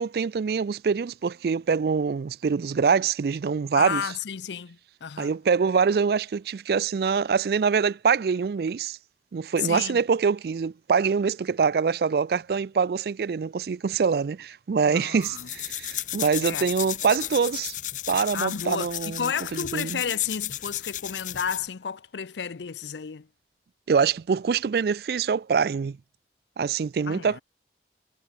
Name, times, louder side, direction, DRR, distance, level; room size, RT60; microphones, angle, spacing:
voice 1, 0.0-4.0 5.2-9.0 9.3-17.7 18.1-20.0 23.9-26.0 26.6-27.4, right 5 dB, 60° right, 0.3 m, -24 dB
voice 2, 3.7-5.3 9.6-10.0 14.9-15.5 16.4-16.7 18.3-23.3 27.1-27.4, left 7 dB, 85° left, 0.6 m, -32 dB
sound 1, 15.2-21.7, left 13 dB, 45° left, 1.1 m, -34 dB
head